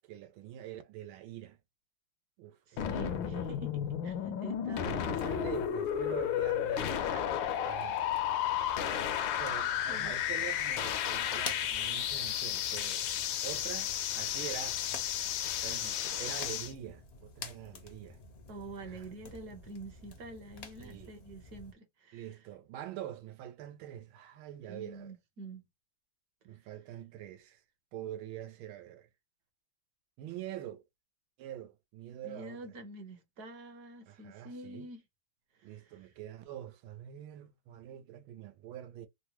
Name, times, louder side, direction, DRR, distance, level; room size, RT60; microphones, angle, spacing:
voice 1, 0.0-1.6 2.4-3.6 4.8-7.1 7.7-8.0 9.4-13.1 13.4-15.3 15.6-18.2 18.8-19.1 20.8-21.1 22.1-25.1 26.4-27.6 27.9-29.1 30.2-30.8 31.4-32.7 34.1-34.9 35.6-39.1, right 11 dB, 90° right, 1.5 m, -45 dB
voice 2, 2.7-5.4 7.1-7.6 8.8-9.4 9.9-10.1 18.5-22.3 24.7-25.6 32.2-35.0 35.6-36.1, right 2 dB, 55° right, 1.4 m, -47 dB
sound 1, 2.8-16.7, left 10 dB, 75° left, 1.3 m, -33 dB
sound 2, 4.9-21.7, left 3 dB, 55° left, 0.7 m, -50 dB
3.8 x 2.1 x 2.9 m
omnidirectional pair, 2.2 m